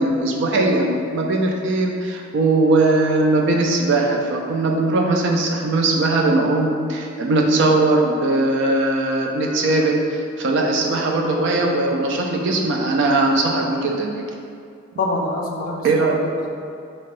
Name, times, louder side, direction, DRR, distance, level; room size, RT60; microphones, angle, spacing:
voice 1, 0.0-14.2 15.8-16.2, right 2 dB, 60° right, 0 dB, 0.4 m, -19 dB
voice 2, 15.0-16.5, left 2 dB, 45° left, -1 dB, 0.3 m, -25 dB
2.9 x 2.2 x 3.0 m, 2.4 s
head